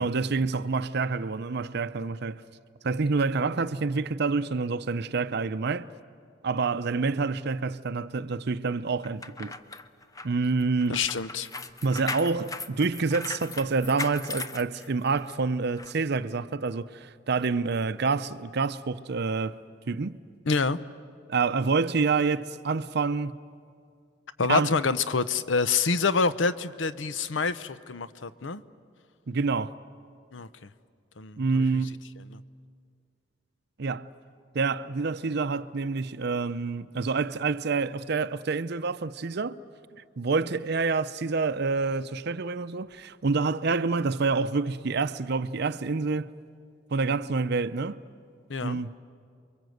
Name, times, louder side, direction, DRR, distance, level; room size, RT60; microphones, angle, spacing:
voice 1, 0.0-2.4 2.8-5.9 6.4-9.5 10.2-11.0 11.8-19.6 19.9-20.2 21.3-23.3 24.5-24.7 29.3-29.7 31.4-32.0 33.8-34.1 34.5-39.6 40.2-46.3 46.9-48.0 48.6-48.9, right 4 dB, 60° right, 0.6 m, -27 dB
sound 1, 9.0-15.3 15.8-15.9, left 3 dB, 20° left, 0.7 m, -38 dB
voice 2, 10.9-11.5 20.5-20.8 24.4-28.6 30.3-30.7 31.2-31.6 32.3-32.4 48.5-48.8, left 4 dB, 70° left, 0.8 m, -27 dB
29.5 x 23.0 x 7.9 m
head